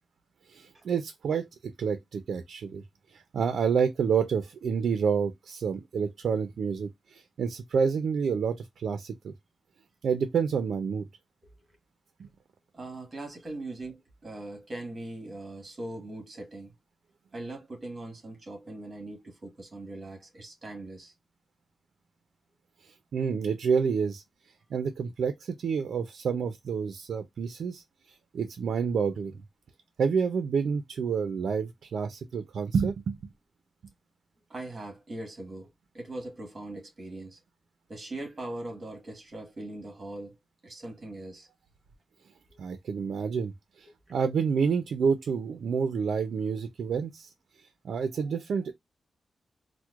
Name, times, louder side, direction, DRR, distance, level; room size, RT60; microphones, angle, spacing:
voice 1, 0.5-1.5 1.8-2.8 3.1-9.3 10.0-11.1 12.2-12.3 23.1-24.2 24.7-27.8 28.3-29.4 30.0-33.2 42.6-43.5 43.8-47.3 47.8-48.7, right 6 dB, 80° right, 0.4 m, -28 dB
voice 2, 12.7-16.7 17.3-21.1 34.5-37.4 37.9-40.4 40.6-41.5 42.5-42.6, right 2 dB, 25° right, 1.2 m, -40 dB
4.4 x 2.1 x 2.3 m
wide cardioid pair, 175°, 0 cm